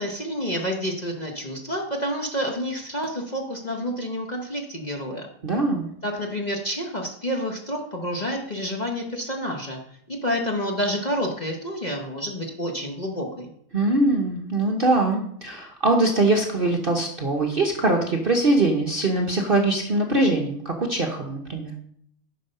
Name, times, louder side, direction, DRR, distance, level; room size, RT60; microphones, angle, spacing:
voice 1, 0.0-5.3 6.0-9.8 10.1-13.5, equal, 30° left, 1 dB, 1.0 m, -29 dB
voice 2, 5.4-5.9 13.7-21.7, right 2 dB, 40° right, 2 dB, 0.9 m, -22 dB
9.3 x 5.5 x 5.4 m, 0.70 s
omnidirectional pair, 1.9 m